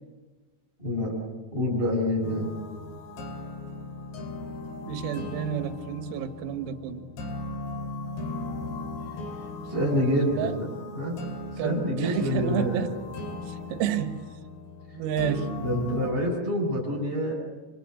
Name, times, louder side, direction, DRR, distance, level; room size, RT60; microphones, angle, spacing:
voice 1, 0.8-1.1 1.5-2.5 9.7-10.7 10.9-11.2 11.5-12.9 15.2-17.3, left 1 dB, 10° left, -4 dB, 7.3 m, -27 dB
sound 1, 2.2-16.1, left 2 dB, 60° left, 4.5 m, -37 dB
voice 2, 4.9-7.1 10.2-10.6 11.6-12.9 13.7-14.3 14.9-15.6, right 9 dB, 85° right, 9 dB, 4.1 m, -30 dB
26.5 x 26.0 x 8.4 m, 1.3 s
omnidirectional pair, 6.0 m